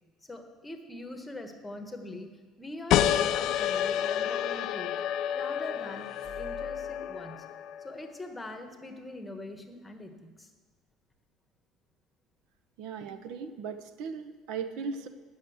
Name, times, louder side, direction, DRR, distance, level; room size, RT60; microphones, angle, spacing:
voice 1, 0.2-2.3 2.6-4.9 5.3-6.1 6.4-7.4 7.8-10.5, left 2 dB, 10° left, 4 dB, 1.1 m, -42 dB
sound 1, 2.9-8.1, left 10 dB, 60° left, 0.4 m, -29 dB
sound 2, 5.4-7.2, right 1 dB, 50° right, 3.0 m, -50 dB
voice 2, 12.8-15.1, right 5 dB, 70° right, 9 dB, 0.7 m, -37 dB
9.7 x 6.4 x 7.8 m, 1.4 s
cardioid pair, 130°, 0 cm